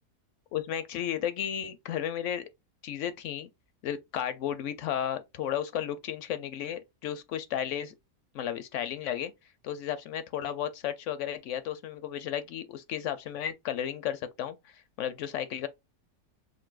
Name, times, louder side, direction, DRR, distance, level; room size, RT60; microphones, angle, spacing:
voice 1, 0.5-2.5 2.8-3.5 3.8-7.9 8.3-9.3 9.6-15.7, left 10 dB, 70° left, 0.8 m, -33 dB
6.0 x 2.6 x 2.4 m
omnidirectional pair, 1.6 m